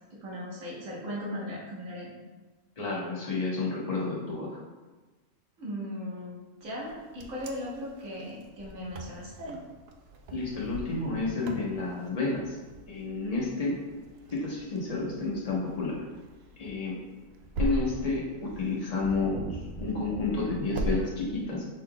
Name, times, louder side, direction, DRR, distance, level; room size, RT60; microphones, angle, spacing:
voice 1, 0.1-2.1 5.6-9.6, equal, 80° right, -5 dB, 1.6 m, -38 dB
voice 2, 2.8-4.6 10.3-12.6 12.9-13.8 14.3-16.0 16.6-17.0 17.6-21.7, left 3 dB, 30° left, -4 dB, 1.0 m, -30 dB
Wind, 6.8-21.0, right 1 dB, 65° right, 0.7 m, -39 dB
6.3 x 3.8 x 2.2 m, 1.3 s
omnidirectional pair, 1.3 m